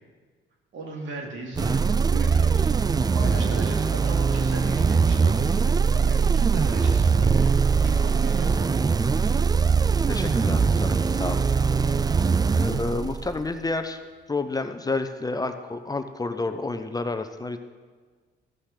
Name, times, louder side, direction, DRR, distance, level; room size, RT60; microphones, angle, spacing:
voice 1, 0.7-2.7 3.1-5.5 5.9-8.7 10.1-10.7, right 2 dB, 75° right, 0 dB, 2.6 m, -38 dB
sound 1, 1.5-13.5, right 5 dB, 20° right, 0.4 m, -22 dB
voice 2, 10.1-11.5 12.0-12.1 12.6-14.0 14.3-17.6, left 3 dB, 20° left, 8 dB, 0.7 m, -30 dB
14.5 x 5.7 x 6.6 m, 1.4 s
cardioid pair, 90°, 20 cm